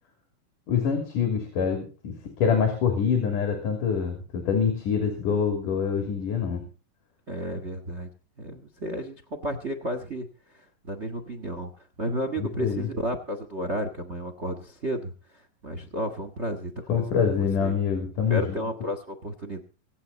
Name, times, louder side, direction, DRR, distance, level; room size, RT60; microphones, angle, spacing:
voice 1, 0.7-6.7 12.4-12.9 16.9-18.4, left 6 dB, 60° left, 4 dB, 4.4 m, -25 dB
voice 2, 7.3-8.1 8.4-10.3 10.5-11.7 12.0-17.0 17.3-17.7 18.3-19.6, equal, 80° right, 7 dB, 0.6 m, -32 dB
25.0 x 8.6 x 4.1 m, 0.36 s
omnidirectional pair, 4.3 m